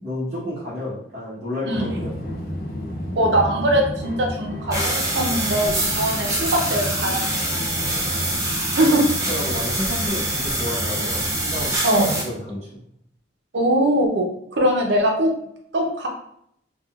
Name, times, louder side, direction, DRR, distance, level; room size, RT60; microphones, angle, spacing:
voice 1, 0.0-2.1 7.7-8.2 8.8-9.0 9.3-12.8, left 1 dB, 35° right, -12 dB, 1.0 m, -31 dB
sound 1, 1.7-11.8, left 1 dB, 55° left, 0.6 m, -32 dB
voice 2, 3.2-7.3 8.8-9.0 11.8-12.2 13.5-15.3 15.7-16.1, right 1 dB, 70° right, 1 dB, 0.6 m, -21 dB
sound 2, 4.7-12.2, right 1 dB, 15° right, 0.6 m, -25 dB
3.6 x 2.2 x 2.3 m, 0.71 s
head